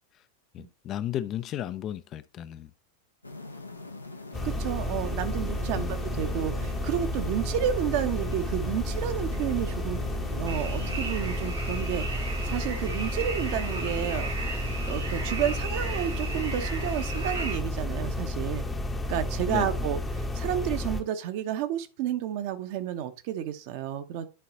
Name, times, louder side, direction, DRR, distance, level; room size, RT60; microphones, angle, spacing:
voice 1, 0.5-2.7 5.7-5.9 19.5-19.9, left 11 dB, 35° left, 0.4 m, -34 dB
sound 1, 3.2-11.2, left 2 dB, 85° left, 0.8 m, -42 dB
sound 2, 4.3-21.0, left 1 dB, 10° left, 0.8 m, -31 dB
voice 2, 4.4-10.0 10.3-18.6 19.1-24.3, right 11 dB, 45° right, 0.9 m, -31 dB
sound 3, 10.5-17.6, right 3 dB, 80° right, 2.0 m, -37 dB
11.0 x 3.9 x 2.9 m
figure-of-eight pair, 90°, 0 cm